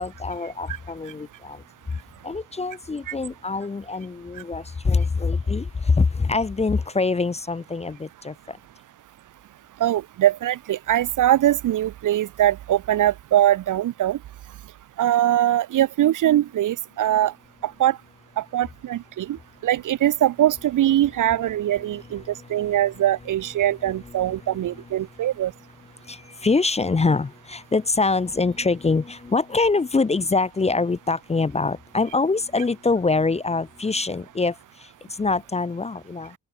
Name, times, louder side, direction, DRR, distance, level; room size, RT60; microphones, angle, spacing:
voice 1, 0.0-1.6 2.2-8.6 21.9-22.8 24.2-24.9 26.0-36.3, left 3 dB, 15° left, 0.6 m, -24 dB
voice 2, 9.8-14.2 15.0-17.3 17.8-18.0 18.4-19.4 19.6-22.2 22.5-25.5, right 12 dB, 55° right, 0.6 m, -22 dB
open air
cardioid pair, 130°, 38 cm